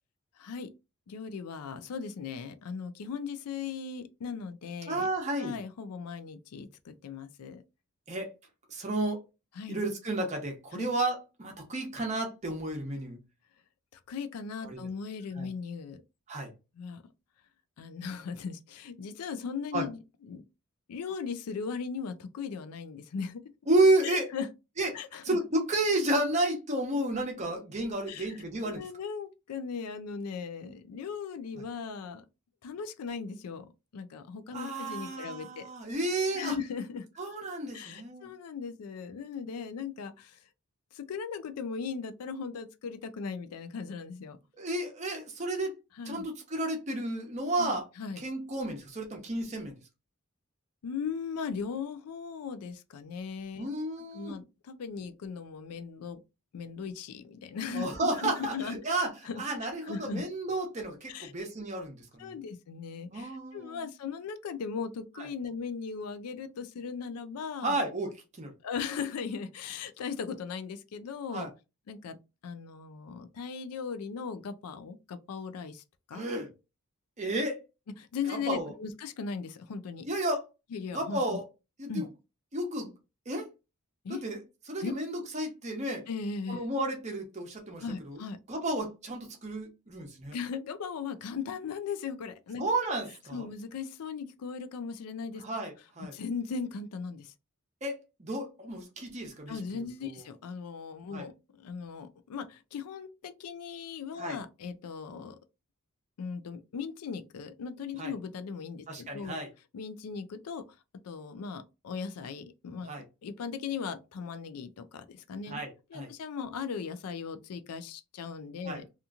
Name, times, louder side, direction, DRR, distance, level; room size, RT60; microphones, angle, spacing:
voice 1, 0.4-0.7 1.1-5.1 5.4-7.6 9.6-9.8 10.7-10.9 14.1-16.0 16.8-17.0 17.8-20.0 20.3-20.4 20.9-23.4 24.0-24.5 24.9-25.2 28.1-28.2 28.6-32.2 32.6-33.7 33.9-35.7 36.3-37.1 37.7-40.4 40.9-44.4 46.0-46.2 47.6-48.2 50.8-53.7 54.1-56.2 56.5-58.8 59.3-59.4 59.9-60.2 61.1-61.3 62.2-67.8 68.6-71.5 71.9-72.2 72.4-75.8 76.1-76.3 78.0-80.1 80.7-81.2 81.9-82.1 84.0-84.2 84.8-84.9 86.1-86.6 87.8-88.4 90.3-92.6 93.3-95.4 96.1-97.3 99.5-105.4 106.2-109.3 109.7-110.6 111.0-115.6 115.9-118.9, left 5 dB, 85° left, 0.4 m, -38 dB
voice 2, 4.9-5.6 8.1-8.3 8.7-9.2 9.7-13.2 14.6-14.8 15.4-15.5 16.3-16.5 19.7-19.9 23.7-24.3 24.8-25.0 25.2-28.8 34.5-36.6 37.2-38.3 44.6-45.7 46.1-47.9 48.2-49.8 53.6-54.4 57.7-62.3 63.1-63.8 65.2-65.3 67.6-68.5 71.3-71.5 76.1-76.5 77.2-77.6 78.3-78.7 80.0-80.5 80.9-81.4 81.8-82.1 82.5-82.9 83.3-83.5 84.1-84.4 84.7-86.1 86.5-88.2 88.5-90.4 92.6-93.5 95.4-96.2 97.8-100.1 101.1-101.3 104.2-104.4 108.0-108.1 108.9-109.5 112.8-113.0 115.5-116.1 118.6-118.8, right 2 dB, 30° right, 0.7 m, -32 dB
2.8 x 2.4 x 2.4 m
head